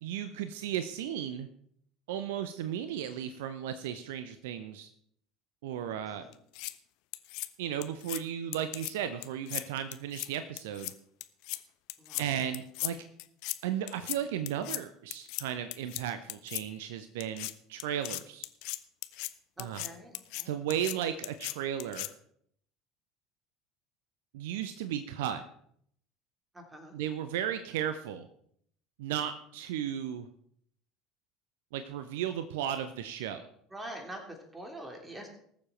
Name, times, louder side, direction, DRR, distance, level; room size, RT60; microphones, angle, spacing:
voice 1, 0.0-1.5 2.1-4.9 5.6-6.3 7.6-10.9 12.2-13.0 13.6-18.4 19.6-19.9 20.4-22.1 24.3-25.4 26.9-28.3 29.0-30.3 31.7-33.4, right 10 dB, 65° right, 10 dB, 0.7 m, -35 dB
voice 2, 5.9-6.4 12.0-12.4 12.9-13.0 19.6-20.5 26.5-27.0 33.7-35.4, right 1 dB, 15° right, 3 dB, 3.1 m, -45 dB
Knife Sharpening, 6.3-6.7 7.1-7.5 7.8-8.2 8.5-8.9 9.2-9.6 9.9-10.3 10.6-10.9 11.2-11.6 11.9-12.2 12.5-12.9 13.2-13.6 13.9-14.2 14.5-14.8 15.1-15.4 15.7-16.0 16.3-16.6 17.2-17.5 17.8-19.3 19.6-19.9 20.1-20.4 20.7-20.9 21.2-21.5 21.8-22.1, left 20 dB, 55° left, 0.6 m, -37 dB
19.5 x 7.3 x 4.4 m, 0.66 s
figure-of-eight pair, 65°, 0 cm